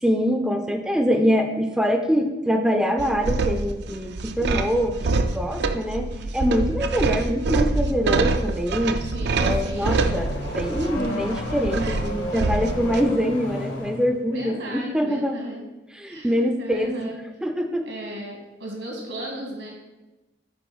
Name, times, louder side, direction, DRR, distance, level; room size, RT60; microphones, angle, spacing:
voice 1, 0.0-9.1 9.4-15.4 15.9-17.1 17.4-17.9, equal, 5° right, 4 dB, 0.4 m, -24 dB
sound 1, 3.0-13.0, right 3 dB, 60° right, 0.5 m, -25 dB
voice 2, 9.0-10.2 14.3-15.7 16.1-17.2 17.9-19.7, right 1 dB, 80° right, 0 dB, 2.4 m, -35 dB
Car / Accelerating revving vroom, 9.1-14.1, left 1 dB, 85° left, 1.7 m, -33 dB
6.9 x 3.9 x 6.1 m, 1.1 s
head